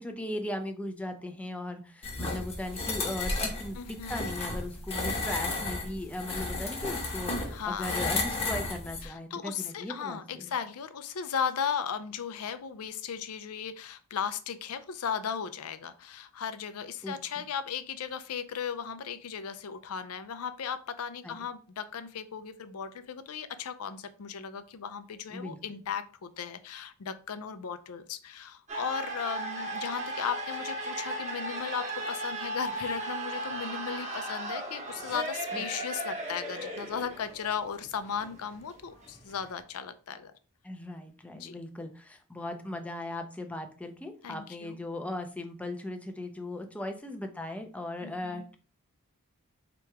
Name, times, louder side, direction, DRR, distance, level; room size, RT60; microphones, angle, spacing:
voice 1, 0.0-10.5 17.0-17.4 21.2-21.3 25.3-25.6 35.5-35.6 40.6-48.5, left 1 dB, 5° left, 5 dB, 0.5 m, -38 dB
sound 1, 2.0-9.1, left 2 dB, 25° left, 0.9 m, -33 dB
voice 2, 3.8-4.2 7.5-8.0 9.0-40.3 41.3-41.6 44.2-44.8 48.0-48.5, left 7 dB, 75° left, 11 dB, 0.5 m, -36 dB
sound 2, 28.7-39.6, right 1 dB, 30° right, 0.9 m, -36 dB
3.3 x 2.9 x 4.7 m, 0.38 s
head